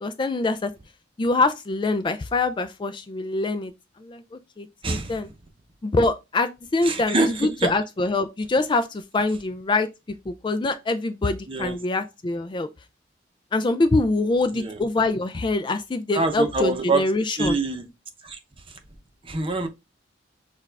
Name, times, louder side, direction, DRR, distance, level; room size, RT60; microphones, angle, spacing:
voice 1, 0.0-0.7 1.2-3.7 4.0-4.2 4.6-5.3 5.8-9.9 10.3-12.7 13.5-17.5, left 2 dB, 25° left, 0.3 m, -24 dB
voice 2, 4.8-5.2 6.8-7.7 11.5-11.8 14.5-14.8 16.1-17.1 17.4-17.9 18.2-18.8 19.2-19.7, right 2 dB, 30° right, 0.7 m, -25 dB
6.7 x 2.4 x 3.4 m
head